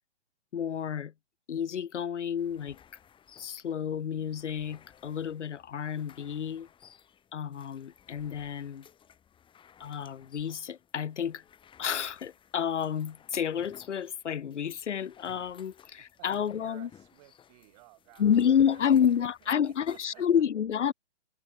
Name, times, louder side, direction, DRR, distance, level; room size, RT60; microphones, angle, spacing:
voice 1, 0.5-1.1 1.5-2.8 3.4-6.7 7.3-8.9 9.8-11.4 11.8-16.9 18.2-20.9, left 8 dB, 75° left, 0.7 m, -29 dB
sound 1, 2.4-20.3, left 8 dB, 15° left, 3.0 m, -59 dB
voice 2, 16.0-16.3 16.6-19.0 19.4-20.4, right 24 dB, 35° right, 7.8 m, -57 dB
figure-of-eight pair, 125°, 36 cm